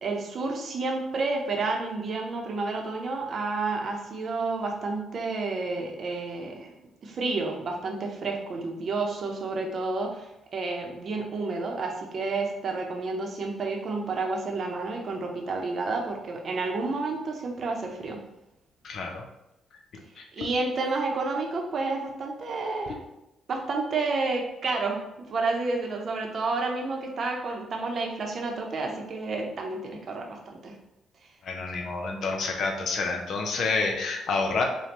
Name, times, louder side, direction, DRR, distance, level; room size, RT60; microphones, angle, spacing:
voice 1, 0.0-6.7 7.0-18.2 20.3-23.1 23.5-25.0 25.3-30.7, right 3 dB, 50° right, 1 dB, 0.7 m, -30 dB
voice 2, 18.8-19.2 20.2-20.5 31.4-34.6, left 4 dB, 65° left, 3 dB, 0.6 m, -28 dB
5.2 x 2.3 x 2.9 m, 0.90 s
cardioid pair, 90°, 0 cm